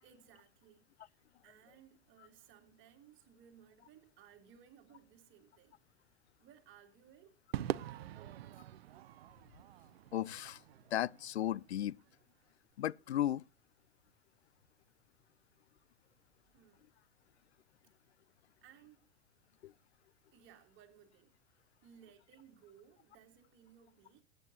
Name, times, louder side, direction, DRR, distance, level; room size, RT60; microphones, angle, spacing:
voice 1, 0.0-8.7 16.5-16.8 18.6-19.0 20.3-21.4 21.8-24.2, right 9 dB, 35° right, 3.1 m, -62 dB
Crowd / Fireworks, 7.5-12.0, right 12 dB, 65° right, 0.6 m, -43 dB
voice 2, 10.1-10.6 10.9-12.0 12.8-13.4 19.6-19.7, left 12 dB, 80° left, 0.5 m, -35 dB
20.0 x 9.0 x 2.8 m
figure-of-eight pair, 95°, 32 cm